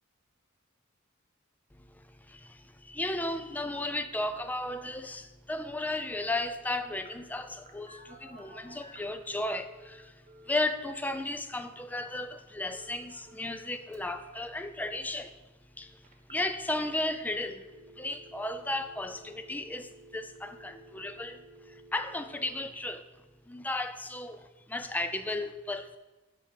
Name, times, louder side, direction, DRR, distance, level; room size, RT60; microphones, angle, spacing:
voice 1, 1.8-10.1 10.5-15.3 15.8-16.0 16.3-17.7 18.0-21.4 21.7-23.0 23.5-26.0, left 2 dB, 10° left, 9 dB, 0.4 m, -34 dB
Telephone, 7.0-9.1 9.6-10.7 12.7-13.7 13.9-14.4 16.0-16.7 17.1-17.2 17.6-22.6, right 2 dB, 35° right, 1.0 m, -54 dB
5.6 x 4.9 x 6.5 m, 1.2 s
head